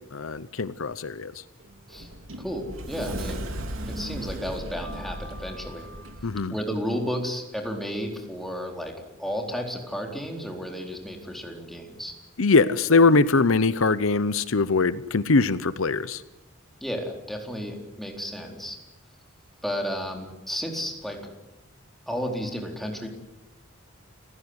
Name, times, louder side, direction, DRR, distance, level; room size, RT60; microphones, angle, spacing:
voice 1, 0.1-1.3 6.2-6.5 12.4-16.2, left 3 dB, 75° left, 15 dB, 0.8 m, -22 dB
Sliding door, 1.6-6.4, right 1 dB, 70° right, 3.1 m, -36 dB
voice 2, 2.4-3.5 3.9-5.9 6.5-12.1 16.8-18.8 19.6-21.3 22.1-23.1, equal, ahead, 1 dB, 4.2 m, -32 dB
30.0 x 15.5 x 9.7 m, 1.0 s
head